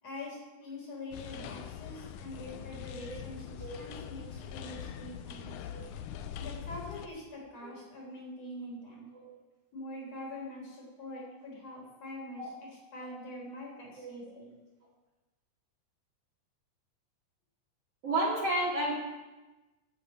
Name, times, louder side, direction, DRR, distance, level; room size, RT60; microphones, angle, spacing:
voice 1, 0.0-5.7 6.4-9.1 9.7-14.5, left 1 dB, 55° left, -3 dB, 4.9 m, -44 dB
sound 1, 1.1-7.1, left 9 dB, 90° left, 2.2 m, -43 dB
voice 2, 14.0-14.4 18.0-18.9, right 1 dB, 50° right, -7 dB, 3.2 m, -32 dB
14.5 x 7.0 x 5.6 m, 1.1 s
omnidirectional pair, 3.6 m